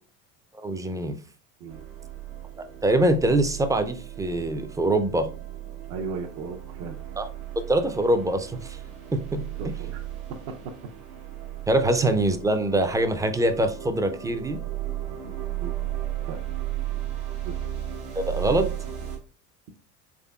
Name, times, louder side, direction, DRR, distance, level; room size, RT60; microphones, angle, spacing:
voice 1, 0.5-1.2 2.8-5.3 7.2-7.3 7.6-8.8 9.1-9.4 11.7-14.6 18.2-18.7, right 1 dB, 10° right, 8 dB, 0.3 m, -24 dB
sound 1, 1.7-19.2, right 12 dB, 90° right, 1.0 m, -35 dB
voice 2, 5.9-7.0 9.3-10.0 10.5-10.6 15.1-15.8 16.3-16.4 17.4-17.5, right 4 dB, 65° right, 2 dB, 0.6 m, -37 dB
3.7 x 3.4 x 2.2 m, 0.39 s
hypercardioid pair, 85°, 37 cm